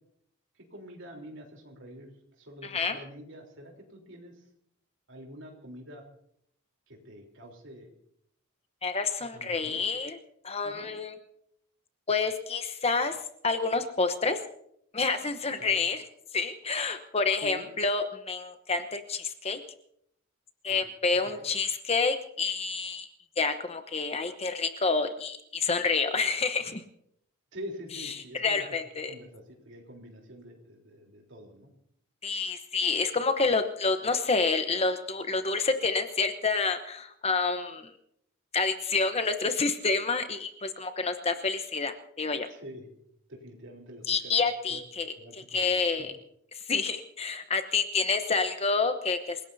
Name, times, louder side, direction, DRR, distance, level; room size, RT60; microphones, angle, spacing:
voice 1, 0.6-2.1 2.4-4.4 5.1-6.1 6.9-7.9 9.3-9.8 10.6-10.9 15.6-15.8 17.4-17.7 20.7-20.8 21.1-21.5 27.5-28.7 29.1-31.7 42.5-42.9 43.3-44.4 44.7-44.8 45.1-46.1, equal, 60° right, 1 dB, 3.7 m, -46 dB
voice 2, 2.6-3.0 8.8-10.2 10.4-11.1 12.1-13.2 13.4-14.4 14.9-16.0 16.3-19.6 20.6-23.1 23.4-26.8 28.3-29.1 32.2-37.9 38.5-42.5 44.1-46.1 46.7-49.4, left 4 dB, 30° left, 8 dB, 1.0 m, -28 dB
28.0 x 17.5 x 2.8 m, 0.71 s
head